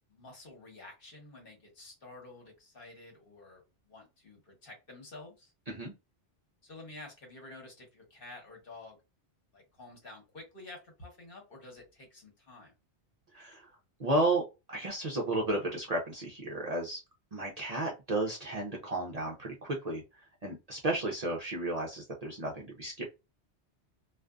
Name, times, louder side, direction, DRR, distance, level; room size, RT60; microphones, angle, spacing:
voice 1, 0.1-5.5 6.6-9.0 9.5-12.7, left 2 dB, 55° left, 0 dB, 1.3 m, -50 dB
voice 2, 13.3-13.7 14.0-17.0 17.3-20.0 20.4-23.0, right 2 dB, 45° right, -1 dB, 0.6 m, -33 dB
2.5 x 2.4 x 2.2 m, 0.26 s
omnidirectional pair, 1.1 m